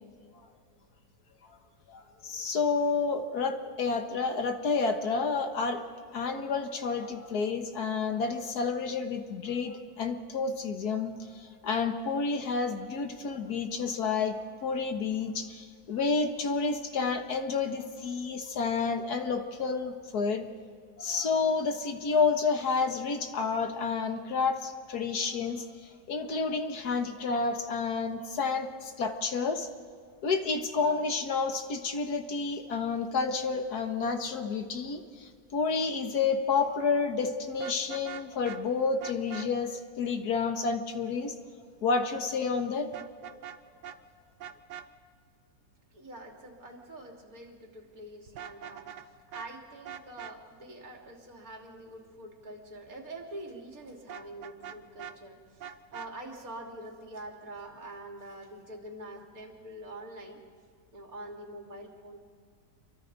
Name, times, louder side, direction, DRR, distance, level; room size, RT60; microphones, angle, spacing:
voice 1, 1.9-5.8 6.1-20.5 21.0-29.7 30.2-41.3 41.8-42.9, left 4 dB, 70° left, 6 dB, 1.9 m, -30 dB
Vehicle horn car horn honking, 37.5-38.6 39.0-39.5 42.9-43.6 43.8-44.0 44.4-44.9 48.3-49.1 49.3-49.5 49.8-50.3 54.1-55.2 55.6-56.1, right 9 dB, 85° right, 1.5 m, -42 dB
voice 2, 45.9-60.4 60.9-62.2, right 1 dB, 55° right, 0 dB, 3.3 m, -45 dB
28.5 x 23.5 x 4.0 m, 2.2 s
omnidirectional pair, 1.8 m